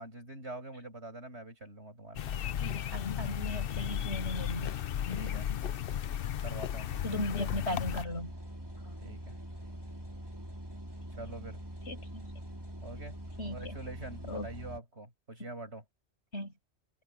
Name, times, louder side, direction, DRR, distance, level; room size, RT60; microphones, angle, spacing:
voice 1, 0.0-2.4 5.1-5.5 6.4-7.2 9.0-9.4 11.1-11.6 12.8-13.1 13.4-15.8, right 2 dB, 90° right, 8.2 m, -45 dB
sound 1, 2.2-8.1, left 10 dB, 60° left, 0.8 m, -34 dB
voice 2, 2.6-4.7 7.0-8.3 8.8-8.9 11.9-12.3 13.4-13.8 14.3-14.5 15.4-15.5 16.3-16.5, left 1 dB, 90° left, 6.1 m, -37 dB
sound 2, 7.9-14.8, equal, 20° right, 5.0 m, -44 dB
omnidirectional pair, 1.1 m